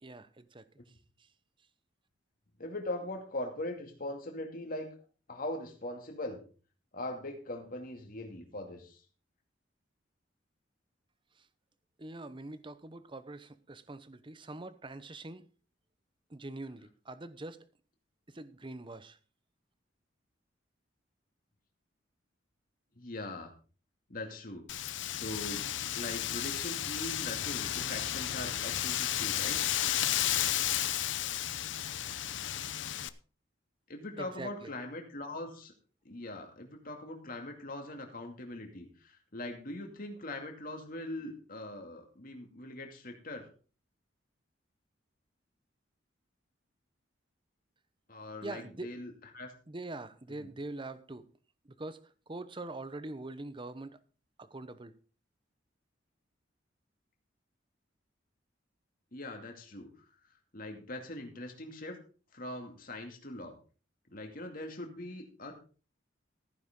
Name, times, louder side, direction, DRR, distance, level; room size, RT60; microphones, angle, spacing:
voice 1, 0.0-1.3 11.4-11.5 12.0-15.4 16.3-17.7 18.3-19.2 34.2-34.7 48.4-48.9 49.7-51.3 51.6-54.0 54.4-54.9, right 2 dB, 25° right, 13 dB, 0.8 m, -44 dB
voice 2, 2.6-4.9 5.3-6.4 6.9-9.0 23.0-23.5 24.1-25.7 25.9-29.6 33.9-35.7 36.0-43.5 48.1-49.5 50.4-50.5 59.1-60.1 60.5-62.0 62.3-63.6 64.1-65.5, left 1 dB, 50° left, 3 dB, 2.4 m, -41 dB
Wind, 24.7-33.1, left 12 dB, 75° left, 0.7 m, -33 dB
15.0 x 9.9 x 3.7 m, 0.38 s
head